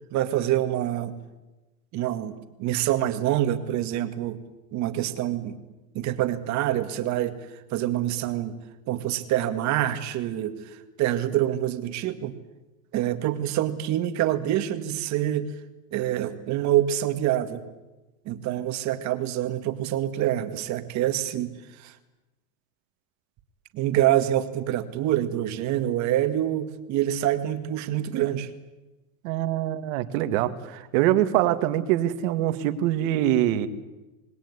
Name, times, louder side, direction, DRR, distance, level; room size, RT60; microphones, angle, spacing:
voice 1, 0.1-1.1 1.9-4.4 4.7-5.6 5.9-7.4 7.7-8.5 8.9-10.6 11.0-12.4 12.9-15.5 15.9-17.6 18.3-21.9 23.7-28.5, right 12 dB, 40° right, 10 dB, 2.1 m, -26 dB
voice 2, 29.2-33.7, right 13 dB, 60° right, 10 dB, 2.2 m, -24 dB
27.0 x 20.0 x 9.9 m, 1.1 s
supercardioid pair, 155°, 44 cm